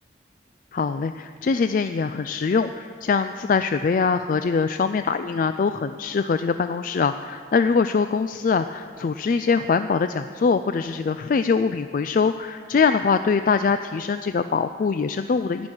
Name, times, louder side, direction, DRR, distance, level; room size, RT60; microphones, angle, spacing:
voice 1, 0.7-15.7, left 5 dB, 50° left, 10 dB, 0.3 m, -23 dB
15.5 x 6.2 x 8.8 m, 2.1 s
head